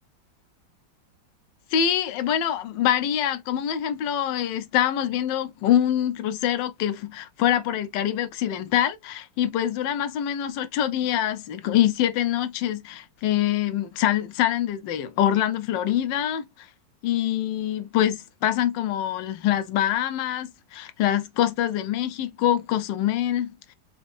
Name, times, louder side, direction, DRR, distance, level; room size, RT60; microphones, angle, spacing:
voice 1, 1.7-16.7 17.0-23.7, left 11 dB, 75° left, 1.2 m, -25 dB
4.2 x 3.1 x 2.4 m
omnidirectional pair, 2.1 m